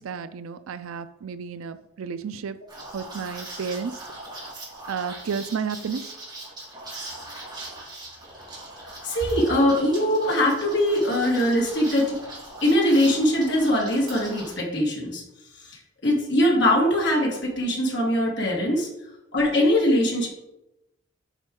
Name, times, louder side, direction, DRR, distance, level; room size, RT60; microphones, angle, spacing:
voice 1, 0.0-2.6 2.9-4.0 4.9-6.2, right 6 dB, 80° right, 13 dB, 0.4 m, -32 dB
Liquid, 2.7-14.5, right 1 dB, 20° right, 1.9 m, -40 dB
voice 2, 8.8-12.2 12.6-15.2 15.6-18.9 19.3-20.3, left 1 dB, 55° left, -2 dB, 1.7 m, -22 dB
8.1 x 4.4 x 3.7 m, 0.91 s
head